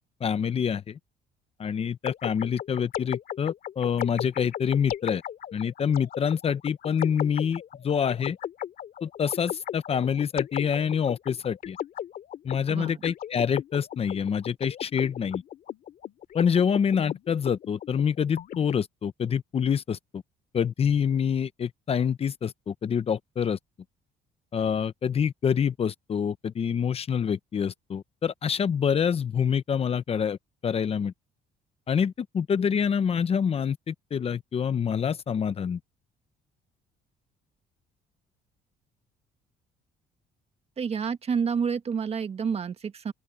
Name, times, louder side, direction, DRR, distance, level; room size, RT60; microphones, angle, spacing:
voice 1, 0.2-1.0 1.6-5.2 5.5-8.4 9.0-11.8 12.4-15.4 16.3-20.2 20.5-23.6 24.5-30.4 30.6-31.1 31.9-35.8, left 7 dB, 35° left, 0.8 m, -26 dB
sound 1, 2.0-18.7, left 10 dB, 60° left, 2.4 m, -36 dB
voice 2, 12.7-13.0 40.8-43.1, right 6 dB, 35° right, 1.7 m, -29 dB
open air
cardioid pair, 110°, 17 cm